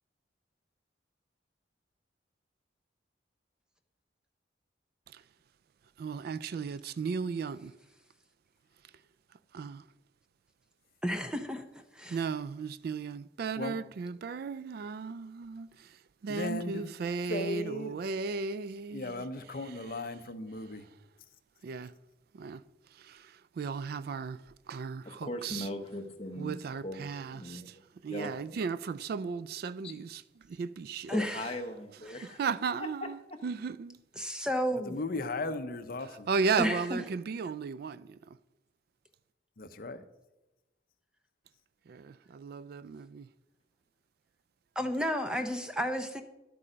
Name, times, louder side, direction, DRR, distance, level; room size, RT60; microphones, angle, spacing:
voice 1, 6.0-7.7 8.8-8.9 9.5-9.8 12.1-20.1 20.6-21.0 21.6-21.9 22.3-25.7 26.4-27.8 28.0-31.2 31.4-31.5 32.2-34.0 36.0-38.4 41.9-43.3, right 5 dB, 55° right, 0.3 m, -36 dB
voice 2, 11.0-11.6 12.0-12.2 31.1-31.5 32.1-32.3 34.2-35.0 36.6-37.0 44.8-46.2, equal, 5° right, 0.6 m, -32 dB
voice 3, 16.3-16.9 17.3-17.9 18.9-20.8 34.9-36.3 39.6-40.1, left 2 dB, 50° left, 0.7 m, -36 dB
voice 4, 25.0-26.5 26.8-27.0 27.3-27.7 28.1-28.6 29.8-29.9 31.1-32.4 32.8-33.4, left 1 dB, 30° left, 1.0 m, -39 dB
11.0 x 8.5 x 5.0 m
head